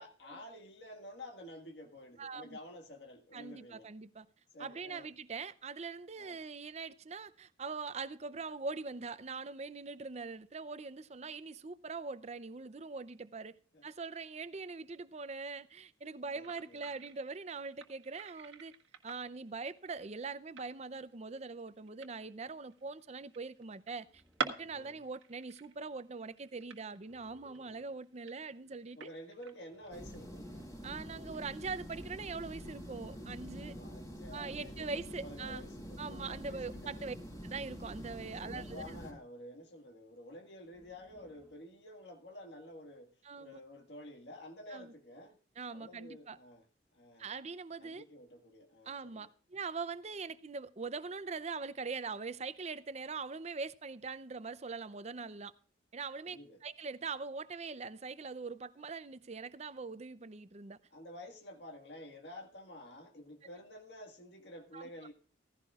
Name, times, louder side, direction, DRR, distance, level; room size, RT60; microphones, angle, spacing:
voice 1, 0.0-3.9 4.5-5.1 6.2-6.4 13.7-13.8 16.3-16.9 24.7-25.0 29.0-30.7 33.5-37.1 38.4-43.1 43.4-45.4 45.7-46.7 46.9-47.3 47.8-49.3 56.2-56.6 60.9-65.1, left 1 dB, 65° left, 1.8 m, -51 dB
voice 2, 2.2-2.6 3.3-4.3 4.6-13.5 13.8-18.7 19.0-29.0 30.8-33.7 34.3-35.6 36.0-37.2 37.4-39.0 43.3-43.6 44.7-44.9 45.6-46.4 47.2-48.0 48.9-55.5 55.9-60.8 64.7-64.9, right 4 dB, 35° right, 0.6 m, -42 dB
sound 1, 16.4-32.1, right 5 dB, 90° right, 1.4 m, -49 dB
sound 2, 24.0-25.0 26.9-27.9 29.7-30.7 32.3-33.3 35.3-36.3 37.9-39.0 40.6-41.6, equal, 5° right, 3.2 m, -64 dB
sound 3, 29.9-39.1, equal, 20° left, 3.7 m, -46 dB
16.0 x 15.5 x 2.4 m
head